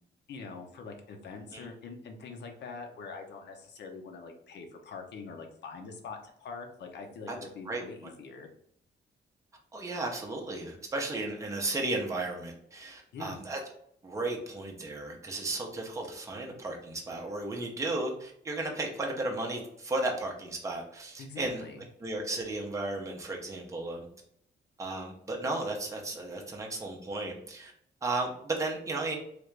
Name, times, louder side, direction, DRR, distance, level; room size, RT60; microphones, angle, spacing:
voice 1, 0.3-8.5 13.1-13.4 21.2-21.9, left 4 dB, 70° left, 3 dB, 0.6 m, -44 dB
voice 2, 9.7-13.6 14.0-21.6 22.0-24.1 24.8-27.7 28.0-29.2, right 2 dB, 15° right, 0 dB, 0.6 m, -34 dB
3.3 x 2.4 x 3.1 m, 0.69 s
wide cardioid pair, 165°, 19 cm